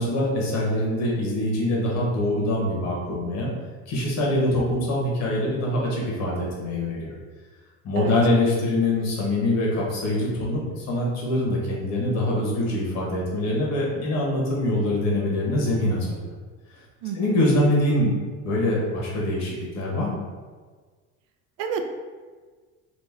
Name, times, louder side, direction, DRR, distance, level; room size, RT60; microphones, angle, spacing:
voice 1, 0.0-3.5 3.9-7.1 7.8-16.2 17.1-18.2 18.4-20.2, left 1 dB, 50° left, -3 dB, 1.2 m, -24 dB
voice 2, 17.0-17.4 21.6-21.8, right 6 dB, 60° right, 6 dB, 0.5 m, -29 dB
3.1 x 2.5 x 3.5 m, 1.5 s
supercardioid pair, 120°, 35 cm